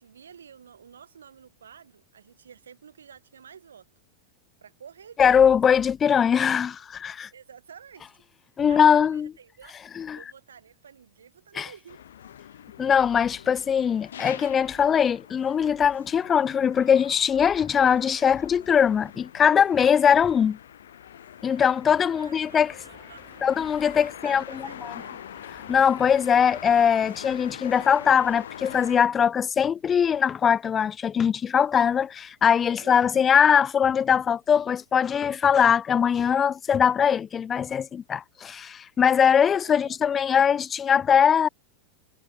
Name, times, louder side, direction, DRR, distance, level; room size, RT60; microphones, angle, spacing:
voice 1, 0.0-3.9 4.6-5.7 7.3-8.1 8.6-9.8 10.1-12.0 22.1-23.4 23.9-25.2 32.8-33.5 39.4-40.3, right 7 dB, 70° right, 5.0 m, -50 dB
voice 2, 5.2-7.3 8.6-9.3 10.0-10.2 11.6-11.7 12.8-20.6 21.4-22.7 23.4-24.4 24.8-24.9 25.7-41.5, left 7 dB, 20° left, 0.3 m, -21 dB
sound 1, 11.9-29.0, left 10 dB, 65° left, 3.0 m, -44 dB
sound 2, 21.9-27.7, right 5 dB, 15° right, 4.8 m, -55 dB
figure-of-eight pair, 90°, 0 cm